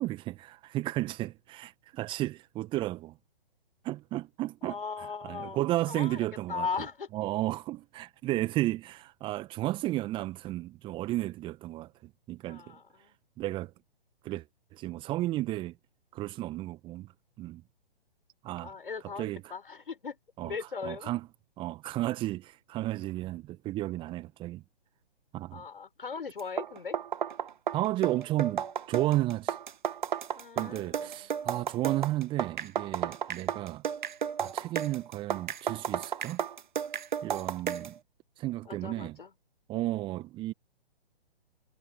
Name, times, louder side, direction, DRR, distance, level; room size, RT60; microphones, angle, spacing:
voice 1, 0.0-3.2 3.8-4.8 5.2-6.7 7.1-12.8 13.4-13.7 14.2-14.4 14.7-15.8 16.1-17.1 17.4-17.6 18.4-18.7 19.2-19.4 20.4-20.5 20.8-21.2 21.6-24.6 25.3-25.6 27.7-29.6 30.6-33.8 34.4-36.4 37.2-38.0 38.4-39.2 39.7-40.5, right 16 dB, 15° right, 1.7 m, -33 dB
voice 2, 4.6-5.6 5.9-7.1 12.5-13.2 18.6-20.2 20.4-21.1 25.5-27.0 30.4-31.3 38.7-39.3, left 5 dB, 60° left, 7.0 m, -38 dB
sound 1, 26.4-38.0, right 8 dB, 50° right, 1.7 m, -33 dB
figure-of-eight pair, 130°, 30 cm